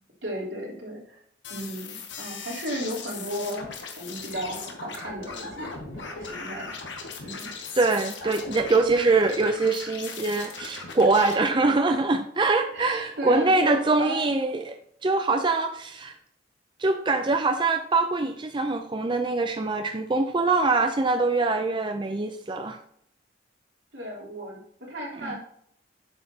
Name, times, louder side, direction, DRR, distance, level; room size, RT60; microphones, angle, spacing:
voice 1, 0.2-1.2 1.5-3.7 4.0-6.7 7.2-7.5 12.7-14.6 23.9-24.6 24.9-25.4, equal, 75° right, -3 dB, 3.3 m, -34 dB
sound 1, 1.4-11.3, left 4 dB, 85° left, 1.5 m, -38 dB
voice 2, 7.7-16.1 16.8-22.8 25.2-25.3, right 3 dB, 25° right, 6 dB, 0.5 m, -24 dB
8.7 x 6.5 x 2.8 m, 0.68 s
head